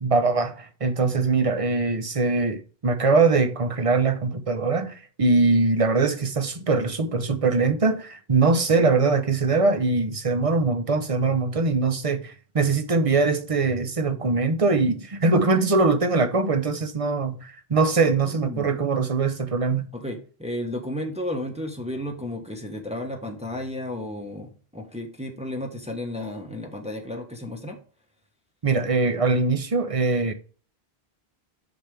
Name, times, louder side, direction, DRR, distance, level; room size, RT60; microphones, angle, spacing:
voice 1, 0.0-19.9 28.6-30.3, right 3 dB, 35° right, 0.9 m, -22 dB
voice 2, 18.2-18.8 19.9-27.8, left 1 dB, 5° right, 1.2 m, -33 dB
8.5 x 6.1 x 3.4 m
omnidirectional pair, 1.1 m